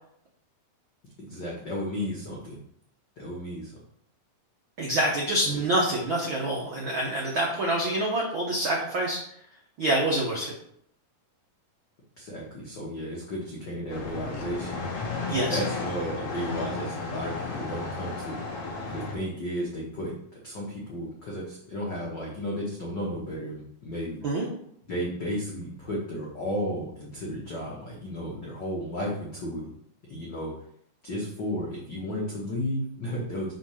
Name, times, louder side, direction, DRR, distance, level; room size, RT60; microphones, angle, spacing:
voice 1, 1.2-2.6 3.2-3.7 5.4-5.6 12.2-14.8 15.3-18.4 18.9-20.2 20.4-24.2 24.9-29.7 30.1-30.5 31.0-33.5, equal, 90° left, -4 dB, 0.9 m, -33 dB
voice 2, 4.8-9.2 9.8-10.5 15.3-15.6 24.2-24.4, right 1 dB, 80° right, -3 dB, 1.1 m, -26 dB
sound 1, 13.9-19.2, left 3 dB, 55° left, 1.9 m, -33 dB
6.0 x 3.9 x 5.6 m, 0.69 s
omnidirectional pair, 4.0 m